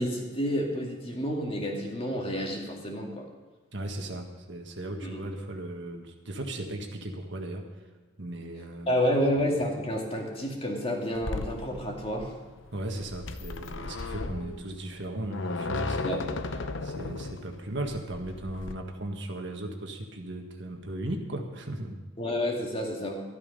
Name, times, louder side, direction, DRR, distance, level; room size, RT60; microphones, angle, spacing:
voice 1, 0.0-3.3 5.0-5.2 8.9-12.3 16.0-16.2 22.2-23.2, equal, 25° left, 1 dB, 2.1 m, -29 dB
voice 2, 3.7-7.7 8.2-9.1 12.7-16.3 16.8-22.0, right 1 dB, 55° right, 3 dB, 1.7 m, -36 dB
sound 1, 11.1-18.7, left 3 dB, 60° left, 0.7 m, -36 dB
13.5 x 12.5 x 5.4 m, 1.3 s
head